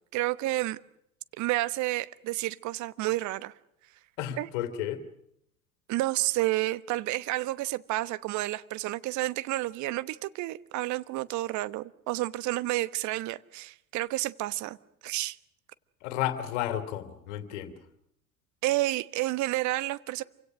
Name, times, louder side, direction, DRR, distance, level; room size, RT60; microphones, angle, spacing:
voice 1, 0.1-0.8 1.4-3.5 4.4-4.5 5.9-14.8 15.0-15.4 18.6-20.2, right 17 dB, 45° right, 1.2 m, -30 dB
voice 2, 4.2-5.0 16.0-17.7, left 11 dB, 60° left, 3.0 m, -32 dB
27.5 x 25.0 x 6.4 m
figure-of-eight pair, 75°, 42 cm